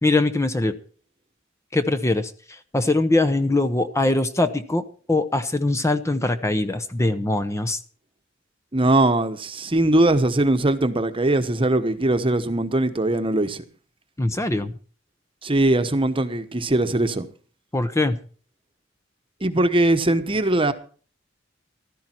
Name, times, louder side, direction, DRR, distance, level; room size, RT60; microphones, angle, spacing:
voice 1, 0.0-0.8 1.7-7.8 14.2-14.7 17.7-18.2, left 2 dB, 15° left, 0.7 m, -22 dB
voice 2, 8.7-13.6 15.4-17.3 19.4-20.7, right 2 dB, 25° right, 1.1 m, -21 dB
15.0 x 13.5 x 4.5 m
head